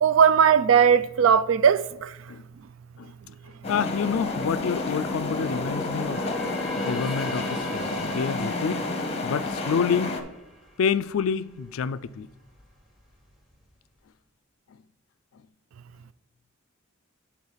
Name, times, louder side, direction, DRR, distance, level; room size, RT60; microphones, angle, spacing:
voice 1, 0.0-1.8, right 7 dB, 65° right, 0.3 m, -18 dB
sound 1, 3.6-10.2, left 2 dB, 30° left, 0.8 m, -30 dB
voice 2, 3.7-6.2 6.8-8.8 9.2-10.2 10.8-12.3, left 6 dB, 70° left, 0.3 m, -28 dB
sound 2, 4.0-11.4 11.7-12.0 12.5-13.2 13.5-13.6, left 1 dB, ahead, 1.1 m, -39 dB
7.9 x 4.2 x 5.6 m
head